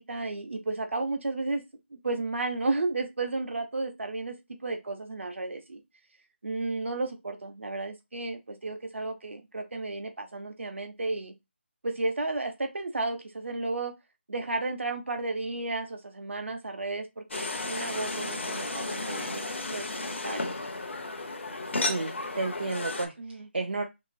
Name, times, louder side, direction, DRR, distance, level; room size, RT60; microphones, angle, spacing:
voice 1, 0.0-1.6 1.9-5.8 6.4-11.3 11.8-13.9 14.3-19.4 19.7-20.5 23.2-23.5, right 3 dB, 75° right, 0.8 m, -33 dB
sound 1, 17.3-23.1, left 2 dB, 70° left, 0.7 m, -33 dB
voice 2, 21.8-23.8, right 3 dB, 55° right, 0.4 m, -32 dB
2.8 x 2.8 x 2.6 m
figure-of-eight pair, 180°, 7 cm